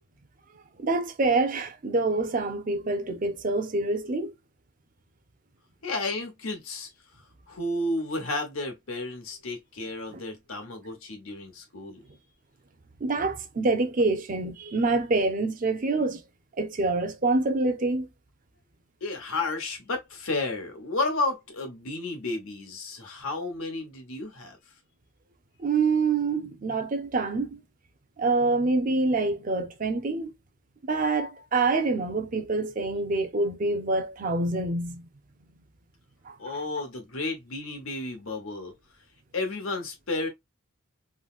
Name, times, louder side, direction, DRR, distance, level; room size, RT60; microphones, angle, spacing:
voice 1, 0.8-4.3 10.1-10.2 13.0-16.2 16.6-18.1 25.6-27.6 28.2-30.3 30.8-35.1 36.3-36.6, right 3 dB, 40° right, 0.5 m, -26 dB
voice 2, 5.8-6.9 7.5-12.0 19.0-24.6 36.4-38.7 39.3-40.3, left 2 dB, 80° left, 1.0 m, -32 dB
3.8 x 2.1 x 2.4 m
head